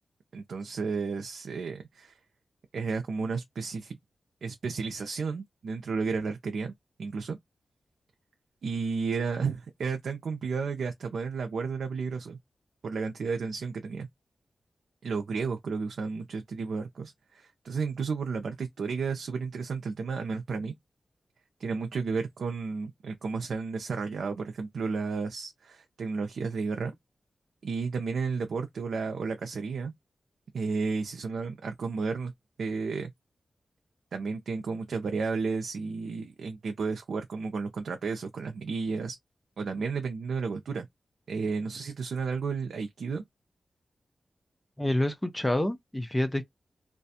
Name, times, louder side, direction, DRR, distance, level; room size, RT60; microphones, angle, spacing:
voice 1, 0.3-2.2 2.7-4.0 4.4-6.7 7.0-7.4 8.6-12.4 12.8-14.1 15.0-20.7 21.6-26.9 27.6-29.9 30.5-32.3 32.6-33.1 34.1-39.2 39.6-40.9 41.3-43.2, right 4 dB, 85° right, 0.4 m, -32 dB
voice 2, 44.8-46.4, left 1 dB, 15° left, 0.7 m, -27 dB
2.4 x 2.2 x 2.7 m
cardioid pair, 70°, 0 cm